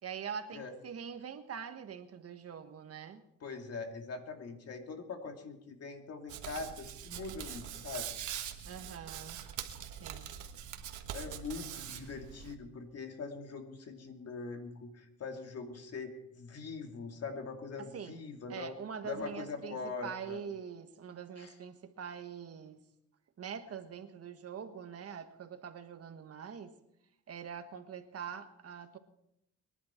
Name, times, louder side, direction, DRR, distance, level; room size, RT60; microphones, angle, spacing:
voice 1, 0.0-3.2 8.7-9.4 10.0-10.3 17.8-18.2 18.5-22.8 23.4-26.7 27.3-29.0, right 7 dB, 50° right, 9 dB, 1.4 m, -44 dB
voice 2, 3.4-8.1 11.1-18.7 19.0-20.4 21.4-21.5, left 4 dB, 55° left, 4 dB, 2.6 m, -42 dB
Hands, 6.3-12.5, right 9 dB, 80° right, 1.6 m, -43 dB
23.5 x 11.0 x 4.5 m, 0.80 s
cardioid pair, 90°, 30 cm